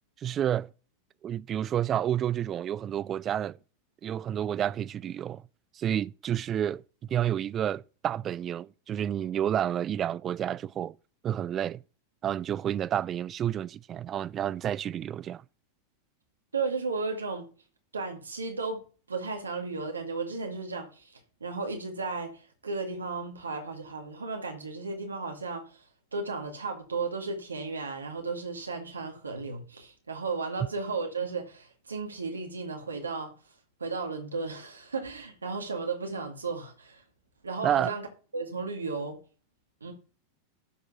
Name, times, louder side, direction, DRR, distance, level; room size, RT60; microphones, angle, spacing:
voice 1, 0.2-0.7 1.2-3.6 4.0-5.4 5.8-6.8 7.1-10.9 11.2-11.8 12.2-15.4 37.6-37.9, right 10 dB, 30° right, 0.3 m, -30 dB
voice 2, 16.5-17.5 17.9-21.1 21.4-25.7 26.1-33.3 33.8-37.0 37.4-38.1 38.3-39.2 39.8-39.9, right 4 dB, 85° right, 2.2 m, -34 dB
12.0 x 4.6 x 6.0 m
figure-of-eight pair, 90°, 0 cm